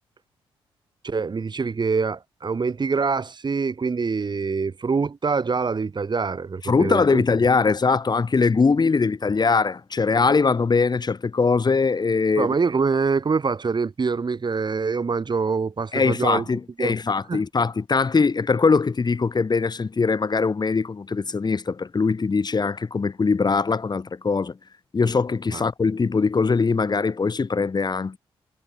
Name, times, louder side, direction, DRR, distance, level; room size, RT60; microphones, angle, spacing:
voice 1, 1.0-7.2 12.4-16.4 16.8-17.0 17.3-17.4 25.5-25.6, right 5 dB, 40° right, 2.7 m, -25 dB
voice 2, 6.6-12.5 15.9-24.6 24.9-28.2, left 4 dB, 40° left, 2.2 m, -21 dB
supercardioid pair, 50°, 11 cm